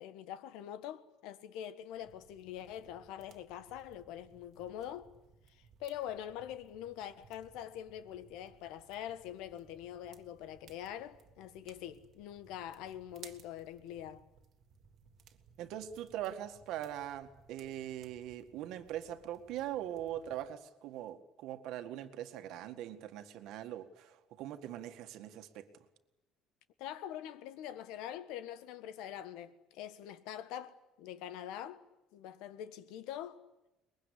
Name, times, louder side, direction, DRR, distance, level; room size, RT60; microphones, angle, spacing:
voice 1, 0.0-5.1 5.5-14.2 26.8-31.8 32.1-33.4, left 10 dB, 75° left, 1.5 m, -44 dB
sound 1, 1.9-20.5, right 7 dB, 40° right, 1.7 m, -62 dB
voice 2, 15.6-25.7, right 11 dB, 60° right, 1.8 m, -42 dB
23.5 x 21.5 x 10.0 m
cardioid pair, 175°, 0 cm